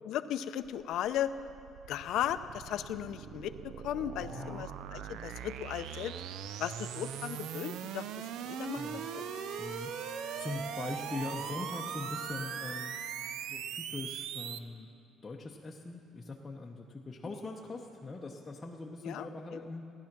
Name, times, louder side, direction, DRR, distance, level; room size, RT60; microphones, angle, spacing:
voice 1, 0.0-1.3 1.9-3.5 3.8-6.1 6.6-8.1 8.4-8.8 9.1-9.2 19.0-19.6, left 11 dB, 70° left, 11 dB, 0.5 m, -36 dB
sound 1, 0.6-14.6, right 9 dB, 75° right, 0.4 m, -41 dB
voice 2, 4.2-4.7 8.7-9.1 9.6-12.9 13.5-14.9 15.2-19.9, left 3 dB, 15° left, -2 dB, 0.7 m, -42 dB
Bowed string instrument, 8.4-13.2, left 1 dB, 25° right, 2.8 m, -48 dB
16.5 x 10.5 x 6.0 m, 2.6 s
cardioid pair, 160°, 0 cm